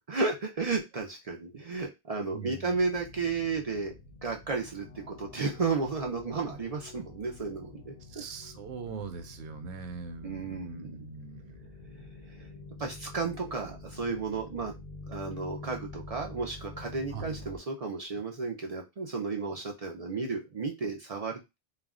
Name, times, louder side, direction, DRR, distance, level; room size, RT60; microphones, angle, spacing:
voice 1, 0.1-3.9 4.2-8.2 10.2-11.0 12.3-12.5 12.8-14.8 15.1-21.6, right 4 dB, 50° right, 1 dB, 0.5 m, -33 dB
voice 2, 2.3-2.8 8.1-11.7 13.7-13.8 17.1-17.3, right 5 dB, 85° right, 7 dB, 0.9 m, -41 dB
sound 1, 2.7-17.6, left 3 dB, 50° left, 0.6 m, -47 dB
2.4 x 2.1 x 3.5 m, 0.23 s
omnidirectional pair, 1.1 m